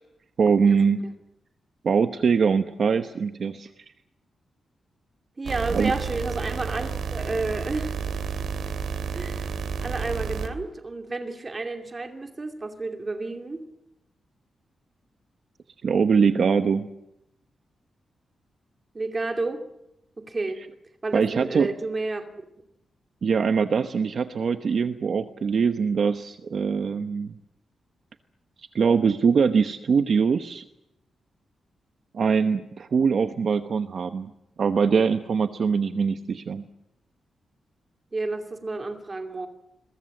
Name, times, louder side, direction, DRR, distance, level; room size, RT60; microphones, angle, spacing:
voice 1, 0.4-1.0 1.8-3.7 5.7-5.9 15.8-16.9 21.1-21.7 23.2-27.4 28.6-30.6 32.1-34.3 34.6-36.6, right 6 dB, 50° right, 8 dB, 1.0 m, -22 dB
voice 2, 5.4-7.9 9.1-13.6 18.9-19.6 20.2-20.6 21.0-22.3 38.1-39.5, right 3 dB, 25° right, 5 dB, 2.6 m, -31 dB
sound 1, 5.4-10.5, right 6 dB, 75° right, 2.7 m, -31 dB
27.5 x 22.5 x 7.8 m, 0.86 s
wide cardioid pair, 170°, 0 cm